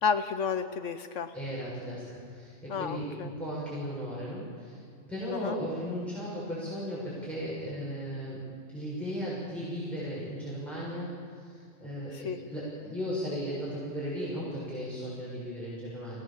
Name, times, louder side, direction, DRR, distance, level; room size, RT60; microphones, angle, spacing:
voice 1, 0.0-1.3 2.7-3.3 5.3-5.6 12.1-12.4, left 6 dB, 70° left, 10 dB, 1.2 m, -31 dB
voice 2, 1.3-4.8 5.1-8.4 8.7-16.2, equal, ahead, -8 dB, 6.9 m, -36 dB
26.0 x 19.0 x 7.2 m, 2.4 s
omnidirectional pair, 1.4 m